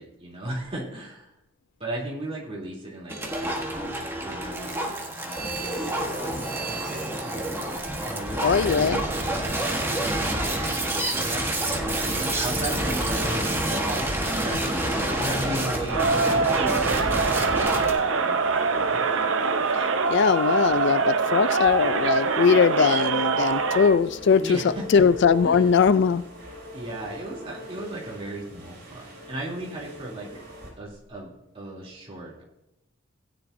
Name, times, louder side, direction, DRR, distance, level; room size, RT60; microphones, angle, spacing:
voice 1, 0.0-1.3 1.8-6.3 8.0-10.1 11.1-19.0 19.3-19.4 24.4-25.1 25.4-25.7 26.7-30.3 30.8-32.4, right 1 dB, 25° right, -4 dB, 3.0 m, -36 dB
sound 1, 3.1-17.9, right 1 dB, 10° right, 1.2 m, -28 dB
voice 2, 8.4-9.0 20.1-24.6 24.9-26.2, left 6 dB, 55° left, 15 dB, 0.3 m, -20 dB
sound 2, 11.4-30.7, left 2 dB, 50° right, 4.8 m, -42 dB
Crowd, 15.9-24.0, right 4 dB, 65° right, 0.7 m, -24 dB
16.0 x 9.8 x 2.6 m, 0.89 s
head